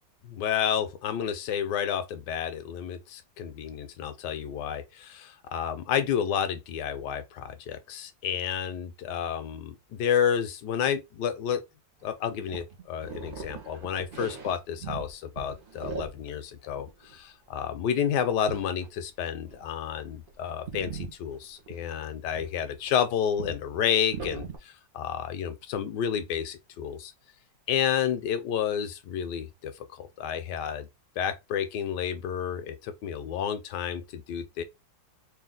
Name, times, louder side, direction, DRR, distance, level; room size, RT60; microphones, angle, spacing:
voice 1, 0.2-11.6 12.0-27.1 27.7-29.7 30.0-30.9 31.2-34.6, left 8 dB, 75° left, 1.2 m, -30 dB
sound 1, 12.0-15.1 15.4-16.3 16.6-17.2 18.5-18.9 19.5-19.6 19.9-20.3 20.6-22.9 23.4-23.6 24.1-24.6, right 5 dB, 40° right, 0.8 m, -39 dB
3.4 x 2.7 x 3.8 m
omnidirectional pair, 1.9 m